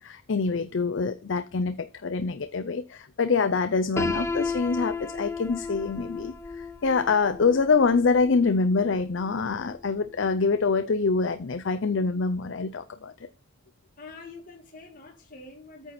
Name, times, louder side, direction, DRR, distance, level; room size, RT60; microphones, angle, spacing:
voice 1, 0.0-13.1, left 4 dB, 60° left, 0.5 m, -25 dB
Piano, 4.0-9.8, left 3 dB, 10° left, 0.6 m, -34 dB
voice 2, 14.0-15.9, left 3 dB, 40° left, 1.7 m, -45 dB
9.0 x 5.9 x 4.2 m
head